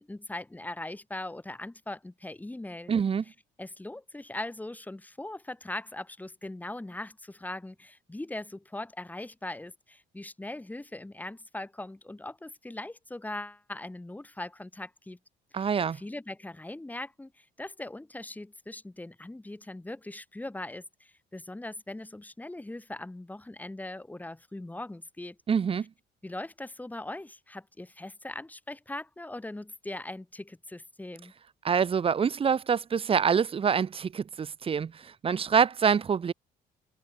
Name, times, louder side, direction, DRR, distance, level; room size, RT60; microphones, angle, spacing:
voice 1, 0.0-2.9 3.6-15.2 15.5-25.4 26.2-31.3, left 2 dB, 10° left, 4.6 m, -40 dB
voice 2, 2.9-3.2 15.5-16.0 25.5-25.9 31.6-36.3, right 6 dB, 35° right, 1.1 m, -26 dB
cardioid pair, 110°, 17 cm